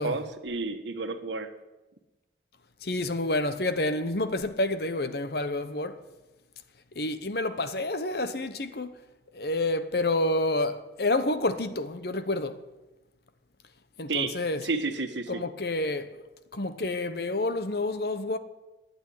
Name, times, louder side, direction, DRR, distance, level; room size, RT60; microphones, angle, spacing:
voice 1, 0.0-1.5 14.1-14.3 14.6-15.4, right 3 dB, 80° right, 1.4 m, -31 dB
voice 2, 2.8-6.0 6.9-8.9 9.3-12.6 14.0-14.7 15.3-16.3 16.5-18.4, left 2 dB, 55° left, 0.9 m, -29 dB
11.5 x 9.1 x 9.6 m
head